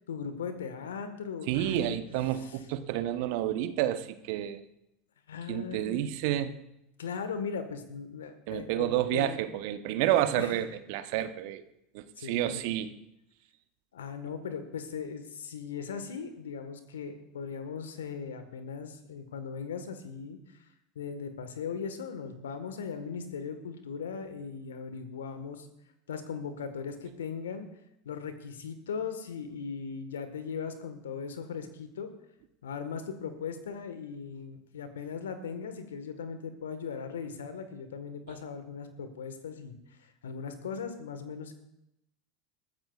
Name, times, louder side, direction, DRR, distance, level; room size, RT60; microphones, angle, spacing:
voice 1, 0.1-2.0 5.3-6.0 7.0-9.3 10.4-10.5 12.2-12.6 13.9-20.7 20.9-25.7 26.1-27.7 28.0-32.1 32.6-41.5, left 6 dB, 80° left, 9 dB, 1.5 m, -38 dB
voice 2, 1.5-4.6 5.5-6.5 8.5-11.6 11.9-12.9, right 12 dB, 60° right, 11 dB, 0.9 m, -30 dB
21.0 x 14.5 x 2.4 m, 0.84 s
hypercardioid pair, 80°, 0 cm